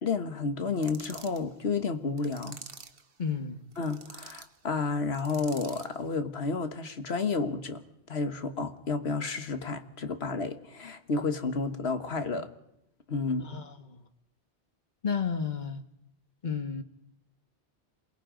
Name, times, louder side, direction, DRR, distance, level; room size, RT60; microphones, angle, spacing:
voice 1, 0.0-2.6 3.8-7.8 8.1-12.5 13.1-13.5, left 4 dB, 70° left, 1.6 m, -31 dB
sound 1, 0.8-1.4 2.2-3.0 3.7-4.5 5.1-6.0, right 5 dB, 60° right, 1.3 m, -47 dB
voice 2, 3.2-3.7 13.4-14.0 15.0-15.8 16.4-16.8, left 6 dB, 45° left, 1.5 m, -32 dB
27.5 x 20.5 x 5.1 m
omnidirectional pair, 1.1 m